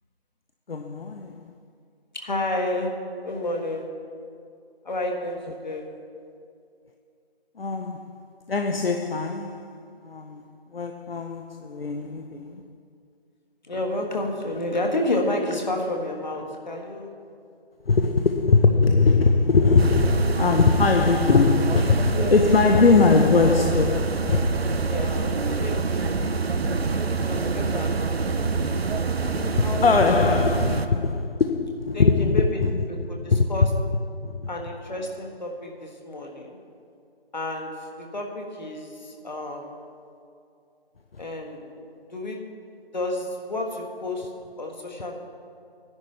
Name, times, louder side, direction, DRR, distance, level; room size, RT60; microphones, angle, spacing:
voice 1, 0.7-1.4 7.6-10.5 10.7-12.6 17.9-24.6 27.2-27.4 29.6-32.8 33.3-33.5 34.2-34.5, left 4 dB, 65° left, 0.7 m, -21 dB
voice 2, 2.1-4.0 4.8-6.0 13.6-17.2 22.1-22.9 24.8-26.1 26.4-26.5 27.1-28.2 29.2-30.0 31.9-32.6 32.9-33.7 34.5-36.6 37.3-39.9 41.2-41.7 42.1-42.4 42.9-45.1, left 1 dB, 45° left, 1.5 m, -31 dB
sound 1, 19.8-30.9, right 4 dB, 75° right, 0.8 m, -26 dB
18.0 x 10.5 x 3.3 m
figure-of-eight pair, 165°, 31 cm